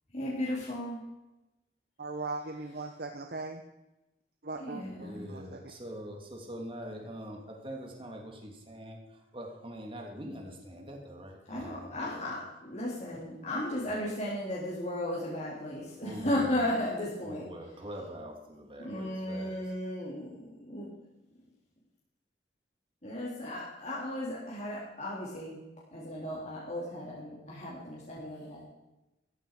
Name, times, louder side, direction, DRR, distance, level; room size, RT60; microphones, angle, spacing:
voice 1, 0.1-1.0 4.6-5.4 11.5-17.5 18.8-20.9 23.0-25.6 25.9-28.6, left 1 dB, 40° left, -7 dB, 3.8 m, -35 dB
voice 2, 2.0-3.6 4.4-5.6, right 3 dB, 60° right, 4 dB, 1.0 m, -39 dB
voice 3, 5.0-12.0 16.0-16.5 17.2-19.6, equal, 30° right, 1 dB, 2.7 m, -43 dB
14.5 x 13.5 x 5.0 m, 0.98 s
head